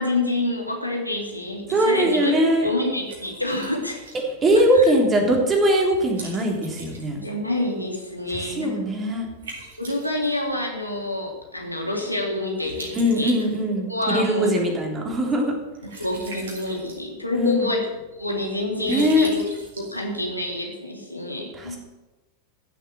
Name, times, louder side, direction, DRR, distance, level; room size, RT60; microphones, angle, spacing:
voice 1, 0.0-2.4 2.6-4.0 4.7-4.8 7.2-8.9 9.8-13.4 13.9-14.6 16.0-17.9 18.2-19.4 19.8-21.8, left 1 dB, 90° left, 0 dB, 2.9 m, -27 dB
Liquid, 1.1-20.6, right 2 dB, 65° right, 4.2 m, -45 dB
voice 2, 1.7-2.7 4.4-7.3 8.4-9.3 12.9-15.5 17.3-17.7 18.9-19.3 21.6-21.8, equal, 20° right, 1 dB, 3.5 m, -21 dB
14.5 x 7.7 x 7.6 m, 1.1 s
figure-of-eight pair, 90°, 0 cm